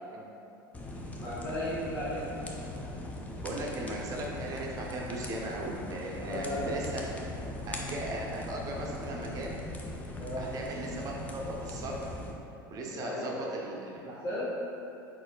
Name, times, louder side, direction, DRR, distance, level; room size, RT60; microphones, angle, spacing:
sound 1, 0.7-12.3, left 1 dB, 15° left, 0.5 m, -40 dB
voice 1, 1.1-2.2 6.1-6.7 10.2-10.4 12.9-13.6 14.0-14.4, left 1 dB, 40° left, -13 dB, 1.4 m, -36 dB
voice 2, 3.4-7.0 7.7-9.6 10.4-12.1 12.7-14.4, right 1 dB, 35° right, -1 dB, 0.6 m, -38 dB
4.5 x 4.2 x 2.4 m, 2.8 s
figure-of-eight pair, 75°, 11 cm